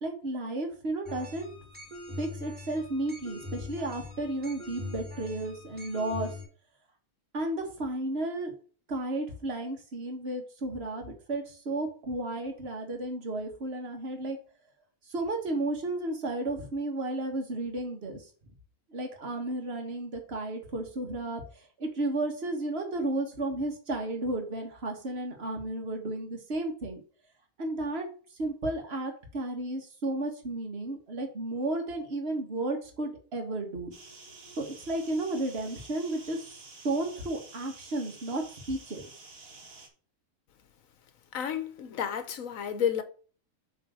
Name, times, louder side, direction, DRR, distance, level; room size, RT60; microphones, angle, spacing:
voice 1, 0.0-1.5 2.2-6.3 7.3-8.5 8.9-14.4 15.1-18.3 18.9-27.0 27.6-28.1 28.4-33.9 34.6-36.5 36.8-39.1, right 2 dB, 50° right, 1.9 m, -33 dB
sound 1, 1.1-6.4, left 2 dB, 5° right, 2.6 m, -42 dB
sound 2, 33.9-39.9, right 3 dB, 80° right, 2.2 m, -50 dB
voice 2, 41.3-43.0, left 8 dB, 75° left, 1.3 m, -31 dB
7.5 x 3.8 x 6.3 m
omnidirectional pair, 1.4 m